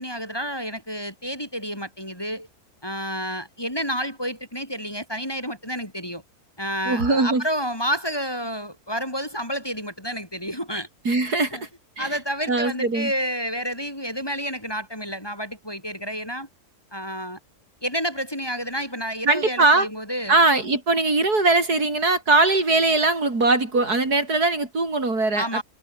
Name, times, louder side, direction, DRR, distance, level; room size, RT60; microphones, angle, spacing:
voice 1, 0.0-2.5 2.8-6.2 6.6-10.9 11.5-11.6 12.0-16.5 16.9-17.4 17.8-20.4 25.4-25.6, equal, 15° left, 7.1 m, -30 dB
voice 2, 6.9-7.4 11.1-11.7 12.0-12.2 12.5-13.1 19.3-19.9 20.3-25.6, right 3 dB, 85° right, 5.7 m, -21 dB
omnidirectional pair, 1.6 m